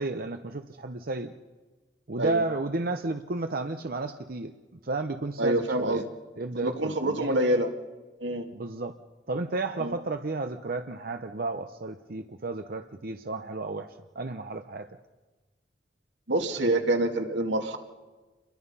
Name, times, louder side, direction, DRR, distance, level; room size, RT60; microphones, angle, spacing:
voice 1, 0.0-1.3 2.1-4.5 4.8-6.0 6.4-7.4 8.5-9.0 9.3-14.9, right 2 dB, 55° right, 7 dB, 0.9 m, -32 dB
voice 2, 5.4-6.1 6.6-7.7 8.2-8.5 9.8-9.9 16.3-17.8, right 1 dB, 85° right, 4 dB, 2.3 m, -26 dB
28.5 x 22.5 x 5.6 m, 1.3 s
head